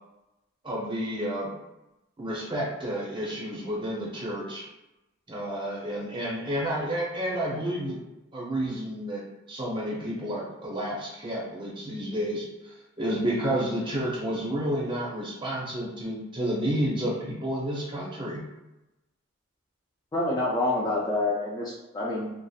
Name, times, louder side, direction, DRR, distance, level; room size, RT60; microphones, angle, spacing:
voice 1, 0.6-1.5 2.2-4.6 5.3-8.0 8.3-9.2 9.5-18.4, equal, 25° right, -4 dB, 0.6 m, -30 dB
voice 2, 20.1-22.4, left 2 dB, 20° left, -5 dB, 0.3 m, -27 dB
2.7 x 2.3 x 2.3 m, 0.96 s
head